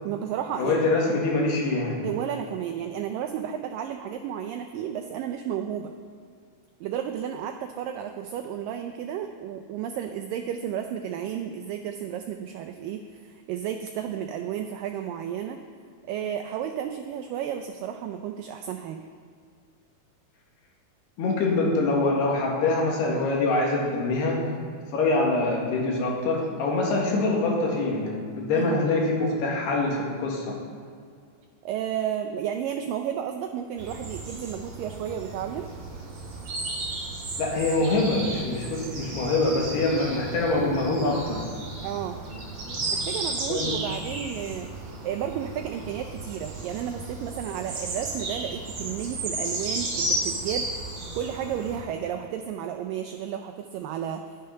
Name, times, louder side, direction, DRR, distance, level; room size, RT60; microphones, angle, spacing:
voice 1, 0.0-0.9 2.0-5.9 6.8-15.6 16.1-19.1 28.5-28.8 31.6-35.7 41.8-42.2 42.9-44.7 45.0-50.7 51.1-54.2, right 9 dB, 90° right, 6 dB, 1.9 m, -32 dB
voice 2, 0.6-2.0 21.2-24.4 24.9-30.6 37.4-41.4 42.3-42.9 43.5-43.7, left 2 dB, 80° left, -2 dB, 3.9 m, -25 dB
sound 1, 33.8-51.8, right 2 dB, 50° right, 3.5 m, -34 dB
11.0 x 9.7 x 5.7 m, 2.2 s
omnidirectional pair, 4.6 m